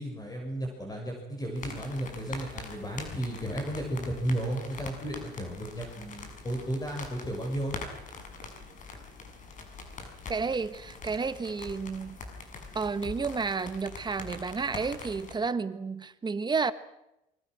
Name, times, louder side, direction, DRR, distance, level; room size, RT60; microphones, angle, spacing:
voice 1, 0.0-7.8, right 1 dB, 20° left, 1 dB, 6.7 m, -34 dB
sound 1, 1.6-15.4, left 3 dB, 50° left, 6.5 m, -43 dB
voice 2, 10.3-12.2 12.7-16.7, right 4 dB, 25° right, 12 dB, 1.4 m, -31 dB
25.0 x 24.0 x 6.3 m, 0.88 s
cardioid pair, 110°, 17 cm